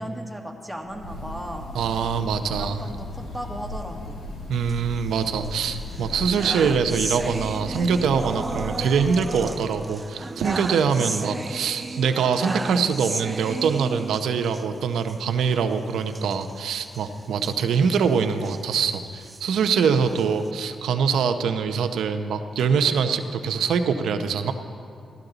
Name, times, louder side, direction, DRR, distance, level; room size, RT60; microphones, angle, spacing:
voice 1, 0.0-1.7 2.6-4.2 20.1-20.3, right 1 dB, ahead, 1 dB, 1.7 m, -36 dB
Breathing / Bird, 0.8-9.4, left 1 dB, 85° left, 1.8 m, -36 dB
voice 2, 1.7-2.8 4.5-24.5, right 6 dB, 85° right, 7 dB, 0.7 m, -24 dB
sound 1, 4.5-5.5 5.9-14.7 15.0-15.2 15.4-15.6 16.1-18.6 19.1-20.5, right 3 dB, 30° right, 0.3 m, -34 dB
16.0 x 12.5 x 4.0 m, 2.3 s
cardioid pair, 65°, 0 cm